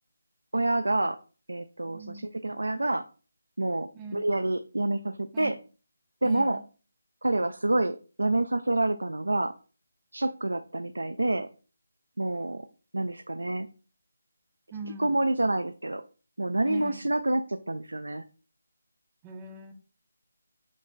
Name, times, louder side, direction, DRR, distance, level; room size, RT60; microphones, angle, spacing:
voice 1, 0.5-1.2 1.5-3.0 3.6-5.6 6.2-6.6 7.2-9.5 10.1-11.5 12.2-12.7 12.9-13.7 15.0-16.0 16.4-18.2, right 2 dB, 80° right, 9 dB, 0.3 m, -28 dB
voice 2, 1.9-2.4 3.9-4.3 5.3-5.5 6.2-6.6 14.7-15.2 16.6-17.1 19.2-19.7, right 3 dB, 15° right, 4 dB, 0.5 m, -40 dB
5.3 x 2.4 x 3.2 m, 0.36 s
figure-of-eight pair, 160°, 0 cm